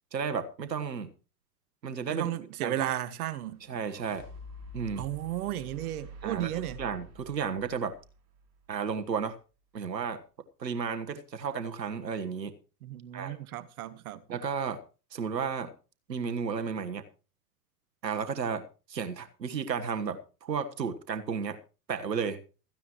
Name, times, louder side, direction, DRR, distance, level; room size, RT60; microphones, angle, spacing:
voice 1, 0.1-1.1 1.8-2.3 2.6-2.9 3.7-4.2 4.7-5.1 6.2-6.5 6.8-8.0 8.7-9.4 9.7-10.2 10.6-12.5 13.1-13.4 14.3-14.8 15.1-15.7 16.1-17.0 18.0-18.6 18.9-21.6 21.9-22.4, right 6 dB, 85° right, 1.5 m, -33 dB
voice 2, 2.1-3.6 5.0-6.8 12.8-14.4, right 13 dB, 60° right, 1.4 m, -34 dB
sound 1, 3.4-8.8, equal, 30° right, 6.3 m, -48 dB
16.0 x 14.5 x 3.1 m
hypercardioid pair, 95°, 49 cm